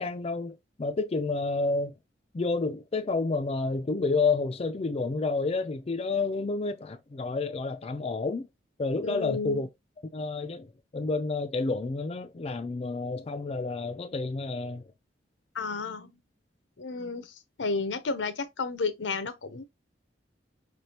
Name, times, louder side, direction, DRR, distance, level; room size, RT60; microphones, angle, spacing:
voice 1, 0.0-2.0 2.3-8.5 8.8-9.7 10.1-14.9, left 3 dB, 35° left, 0.4 m, -30 dB
voice 2, 9.0-9.7 15.5-16.2 16.8-19.6, left 4 dB, 85° left, 0.7 m, -32 dB
4.7 x 3.3 x 2.8 m
head